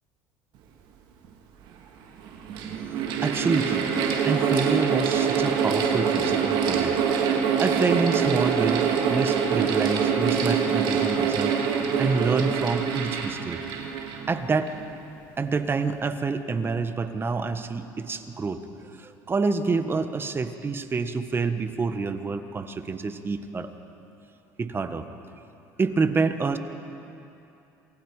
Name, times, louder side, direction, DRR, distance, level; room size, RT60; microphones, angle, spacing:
Mechanical fan, 1.2-1.3 2.2-14.9, right 7 dB, 65° right, 2.5 m, -25 dB
voice 1, 3.2-3.9 4.2-7.0 7.6-11.5 12.0-13.6 14.3-14.8 15.4-18.6 18.9-23.7 24.6-25.0 25.8-26.6, right 4 dB, 25° right, 9 dB, 1.4 m, -27 dB
28.0 x 20.0 x 5.0 m, 2.8 s
supercardioid pair, 80°, 8 cm